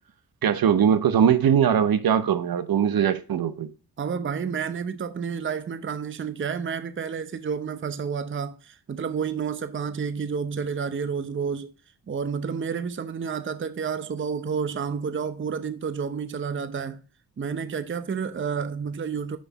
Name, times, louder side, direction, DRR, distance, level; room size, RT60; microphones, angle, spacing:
voice 1, 0.4-3.7, right 8 dB, 55° right, 0.9 m, -21 dB
voice 2, 4.0-11.7 12.1-17.0 17.4-19.4, right 6 dB, 30° right, 0.7 m, -30 dB
6.4 x 5.5 x 3.9 m
supercardioid pair, 60°, 42 cm